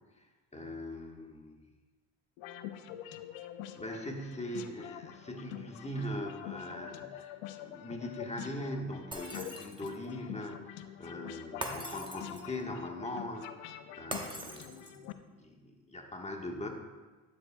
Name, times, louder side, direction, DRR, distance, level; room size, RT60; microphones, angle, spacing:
voice 1, 0.2-1.6 3.8-16.7, left 1 dB, 15° left, 2 dB, 1.4 m, -41 dB
sound 1, 2.4-15.1, left 11 dB, 85° left, 0.6 m, -46 dB
Shatter, 9.1-10.1 11.6-12.6 14.1-15.1, right 1 dB, 10° right, 1.0 m, -42 dB
12.5 x 7.1 x 2.3 m, 1.3 s
supercardioid pair, 70°, 43 cm